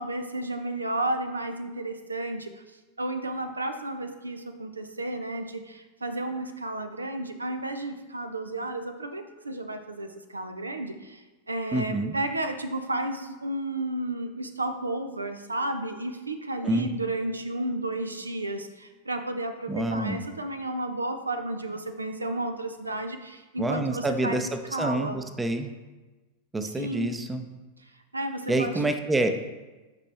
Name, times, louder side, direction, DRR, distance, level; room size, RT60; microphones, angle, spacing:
voice 1, 0.0-2.6 3.0-25.2 26.8-27.2 27.8-28.8, right 2 dB, 80° right, 8 dB, 0.5 m, -32 dB
voice 2, 11.7-12.1 16.6-16.9 19.7-20.2 23.6-25.7 26.5-27.4 28.5-29.3, right 2 dB, 10° right, 7 dB, 0.6 m, -27 dB
8.3 x 5.3 x 3.3 m, 1.2 s
figure-of-eight pair, 90°, 0 cm